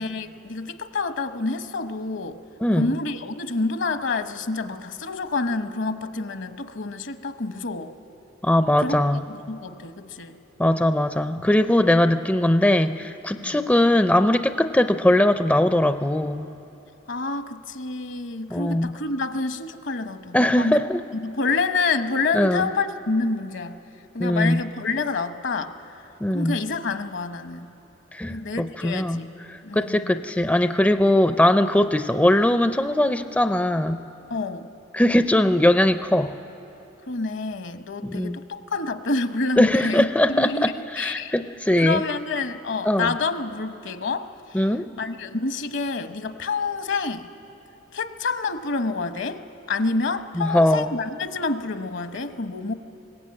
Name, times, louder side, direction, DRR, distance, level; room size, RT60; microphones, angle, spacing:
voice 1, 0.0-2.4 2.8-7.9 8.8-10.4 13.4-13.6 17.1-20.8 21.1-23.8 24.1-25.7 26.3-27.7 28.3-29.3 29.6-30.2 34.3-34.7 37.1-41.3 41.8-44.6 45.0-47.3 47.9-49.4 49.7-52.7, left 3 dB, 65° left, 9 dB, 1.0 m, -28 dB
voice 2, 2.6-2.9 8.4-9.2 10.6-16.5 18.5-18.9 20.3-21.0 22.3-22.7 24.2-24.6 26.2-26.6 28.1-29.2 29.7-34.0 34.9-36.3 38.0-38.4 39.6-42.0 42.9-43.1 44.5-44.9 50.4-50.9, left 1 dB, 10° left, 9 dB, 0.4 m, -20 dB
22.0 x 19.0 x 8.7 m, 2.9 s
head